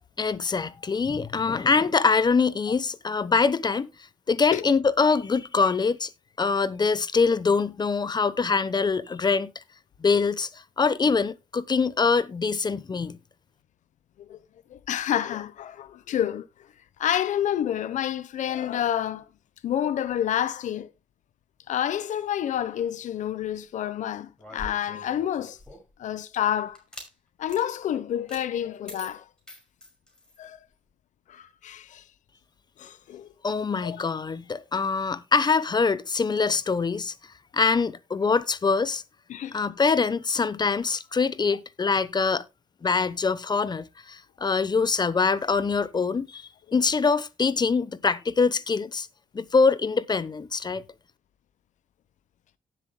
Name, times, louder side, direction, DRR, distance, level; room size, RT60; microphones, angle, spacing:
voice 1, 0.2-3.9 4.3-6.1 6.4-9.6 10.0-13.2 33.4-37.1 37.5-39.0 39.5-42.4 42.8-49.1 49.3-50.8, left 4 dB, 35° left, 0.9 m, -24 dB
voice 2, 14.7-16.4 17.0-19.2 19.6-20.9 21.7-25.6 26.0-26.8 27.4-29.2 30.4-30.6 31.3-32.0 32.8-33.3 33.8-34.0 39.3-39.6, left 10 dB, 75° left, 0.9 m, -28 dB
sound 1, 24.4-26.0 26.7-27.1 27.5-27.7 28.3-28.4 28.9-30.4, left 1 dB, 5° left, 5.5 m, -44 dB
18.0 x 7.7 x 2.2 m
cardioid pair, 80°, 13 cm